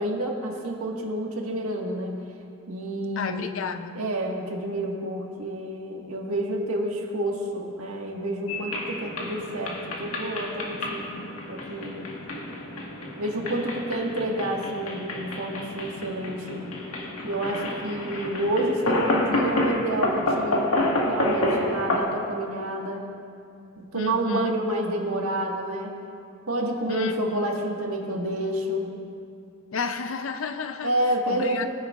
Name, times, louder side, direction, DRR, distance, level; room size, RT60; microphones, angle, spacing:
voice 1, 0.0-2.2 2.7-3.4 3.9-11.2 11.5-12.1 13.2-16.8 17.2-20.7 21.1-23.1 23.8-26.0 26.5-28.9 30.8-31.7, right 1 dB, 85° right, 0 dB, 1.6 m, -29 dB
voice 2, 3.2-4.0 23.9-24.5 26.9-27.5 29.7-30.9 31.3-31.7, left 5 dB, 65° left, 8 dB, 0.5 m, -31 dB
sound 1, 8.5-22.0, left 1 dB, 85° left, 1.6 m, -29 dB
22.5 x 9.8 x 2.4 m, 2.5 s
head